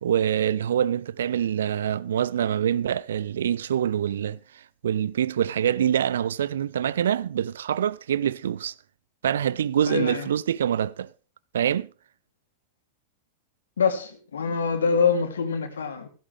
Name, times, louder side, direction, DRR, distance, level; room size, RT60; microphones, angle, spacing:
voice 1, 0.0-4.4 4.8-8.7 9.2-11.1 11.5-11.9, right 9 dB, 65° right, 0.5 m, -25 dB
voice 2, 9.9-10.3 13.8-16.1, left 5 dB, 70° left, 2.7 m, -25 dB
16.0 x 13.5 x 3.3 m
figure-of-eight pair, 90°, 0 cm